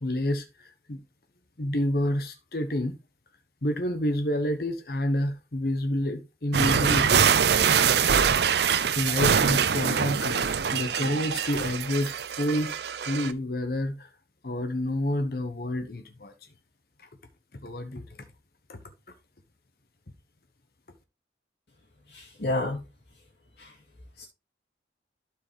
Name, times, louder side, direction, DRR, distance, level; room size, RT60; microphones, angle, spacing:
voice 1, 0.0-1.0 1.6-2.9 3.6-7.3 8.8-12.7 13.1-14.1 14.4-16.3 17.5-18.0 18.7-18.8, left 1 dB, 55° left, 1.0 m, -29 dB
sound 1, 6.5-13.3, right 7 dB, 70° right, 0.5 m, -24 dB
voice 2, 22.1-22.8 23.6-23.7 24.2-24.3, left 2 dB, 70° left, 2.3 m, -30 dB
12.0 x 4.8 x 3.0 m
head